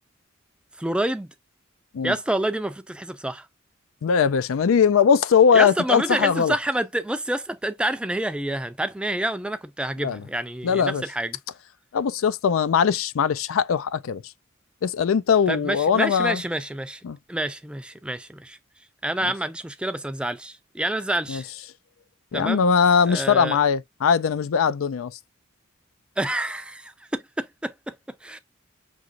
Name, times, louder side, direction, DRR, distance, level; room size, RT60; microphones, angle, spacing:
voice 1, 0.8-1.3 2.0-3.5 5.5-11.4 15.5-17.0 17.3-18.6 19.0-21.5 22.3-22.6 23.1-23.6 26.2-28.4, right 1 dB, 5° right, 0.4 m, -28 dB
voice 2, 4.0-6.5 10.0-10.2 10.6-11.0 11.9-14.2 14.8-16.4 17.0-17.2 19.2-19.3 21.3-21.4 22.3-25.2, left 6 dB, 90° left, 0.4 m, -20 dB
6.1 x 2.9 x 2.5 m
head